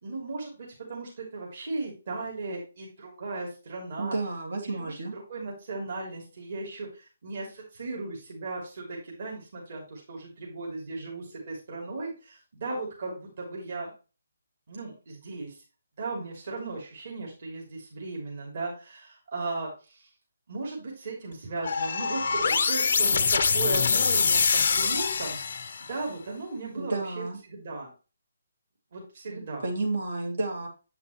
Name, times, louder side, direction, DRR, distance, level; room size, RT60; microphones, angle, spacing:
voice 1, 0.0-4.1 4.6-13.9 14.7-15.5 16.0-20.1 20.5-25.4 25.9-27.9 28.9-29.7, right 3 dB, 50° right, -2 dB, 3.2 m, -36 dB
voice 2, 4.0-5.1 26.8-27.4 29.3-30.7, right 2 dB, 70° right, 2 dB, 2.5 m, -31 dB
sound 1, 21.6-25.9, left 5 dB, 55° left, 0.8 m, -24 dB
8.3 x 5.8 x 3.2 m, 0.33 s
figure-of-eight pair, 145°, 0 cm